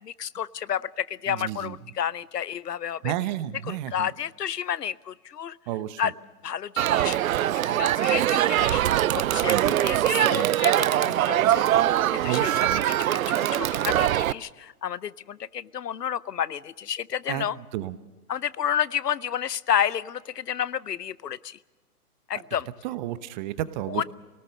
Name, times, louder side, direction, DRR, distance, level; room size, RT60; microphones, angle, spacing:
voice 1, 0.0-3.1 3.6-5.6 6.0-6.1 6.4-7.2 7.5-8.8 9.1-11.6 12.1-17.6 18.3-21.6 22.3-22.7 23.9-24.0, left 9 dB, 90° left, 21 dB, 0.7 m, -30 dB
voice 2, 1.3-1.8 3.0-4.1 5.7-6.0 9.4-9.8 10.2-10.5 12.2-12.9 17.3-17.5 17.7-18.0 22.8-24.0, right 13 dB, 30° right, 14 dB, 0.9 m, -32 dB
Crowd, 6.8-14.3, right 12 dB, 60° right, 0.6 m, -23 dB
26.0 x 18.5 x 6.5 m, 1.2 s
hypercardioid pair, 130°, 47 cm